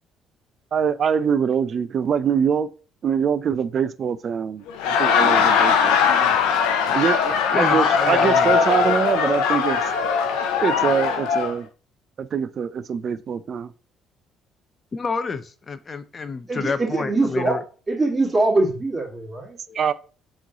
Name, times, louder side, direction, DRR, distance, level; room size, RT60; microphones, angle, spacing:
voice 1, 0.7-2.7 3.0-6.3 6.9-9.8 10.6-11.7 12.2-13.7 19.7-19.9, right 7 dB, 50° right, 0.4 m, -24 dB
Laughter, 4.7-11.5, left 6 dB, 85° left, 0.5 m, -20 dB
voice 2, 7.5-8.6 14.9-17.6 19.7-19.8, left 4 dB, 35° left, 0.4 m, -28 dB
voice 3, 16.5-17.6 17.9-19.6, right 2 dB, 25° right, 1.9 m, -22 dB
3.6 x 3.1 x 3.9 m
supercardioid pair, 75°, 0 cm